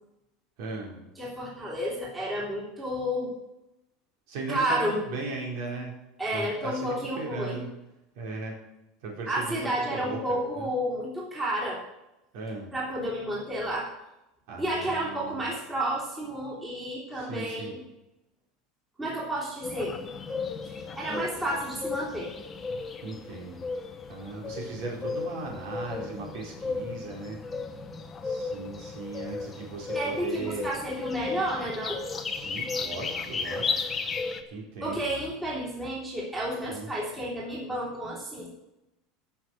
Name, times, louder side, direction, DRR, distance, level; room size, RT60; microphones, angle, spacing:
voice 1, 0.6-1.0 4.3-6.0 6.3-7.7 8.1-8.6 9.0-10.7 12.3-12.7 14.5-15.5 17.1-17.7 21.0-21.5 23.0-23.6 24.1-27.4 28.2-30.7 32.3-33.7 34.5-35.1 36.7-36.9, right 3 dB, 65° right, -2 dB, 4.6 m, -37 dB
voice 2, 1.2-3.3 4.5-5.0 6.2-7.6 9.3-11.8 12.7-13.9 14.6-17.8 19.0-20.0 20.6-22.3 29.9-32.0 34.8-38.5, right 1 dB, 10° right, -5 dB, 3.3 m, -31 dB
sound 1, 19.6-34.4, left 4 dB, 15° left, 0.9 m, -35 dB
16.0 x 6.3 x 6.5 m, 0.92 s
cardioid pair, 170°, 0 cm